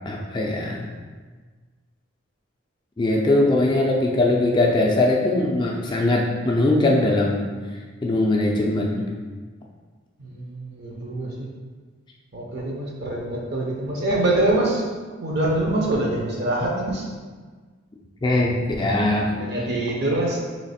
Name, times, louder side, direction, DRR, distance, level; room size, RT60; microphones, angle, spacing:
voice 1, 0.1-0.9 3.0-7.4 8.0-9.0 18.2-19.3, left 2 dB, 20° left, -1 dB, 0.3 m, -21 dB
voice 2, 10.2-11.5 12.3-14.8 15.2-17.0 19.2-20.4, right 1 dB, 50° right, -2 dB, 0.6 m, -24 dB
3.2 x 2.8 x 4.1 m, 1.4 s
head